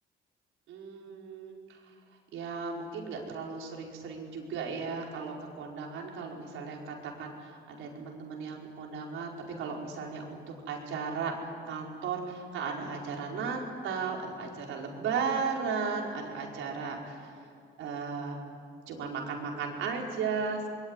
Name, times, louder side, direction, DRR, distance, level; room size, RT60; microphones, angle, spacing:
voice 1, 0.7-1.8 2.3-17.3 17.8-18.4 18.9-20.7, right 5 dB, 90° right, 0 dB, 5.0 m, -35 dB
26.0 x 22.5 x 10.0 m, 2.4 s
cardioid pair, 90°, 20 cm